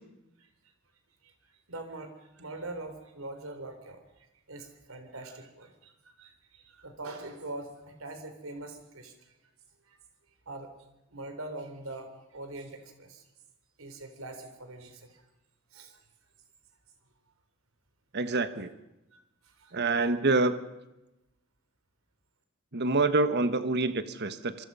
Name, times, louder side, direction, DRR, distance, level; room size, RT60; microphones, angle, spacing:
voice 1, 1.7-4.0 4.5-9.3 9.9-10.0 10.5-10.7 11.1-13.2 13.8-15.3 15.7-16.0 19.1-19.7, right 2 dB, 85° right, 6 dB, 3.8 m, -43 dB
voice 2, 18.1-18.7 19.7-20.6 22.7-24.6, right 3 dB, 55° right, 11 dB, 1.3 m, -26 dB
26.5 x 24.5 x 5.6 m, 0.95 s
head